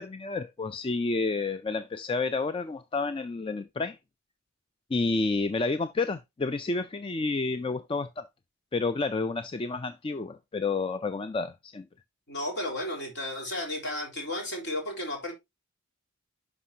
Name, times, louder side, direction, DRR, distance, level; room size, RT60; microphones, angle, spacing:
voice 1, 0.0-4.0 4.9-8.3 8.7-11.9, left 3 dB, 25° left, 0.3 m, -30 dB
voice 2, 12.3-15.3, left 1 dB, 50° left, 3.8 m, -33 dB
11.0 x 5.3 x 2.8 m
head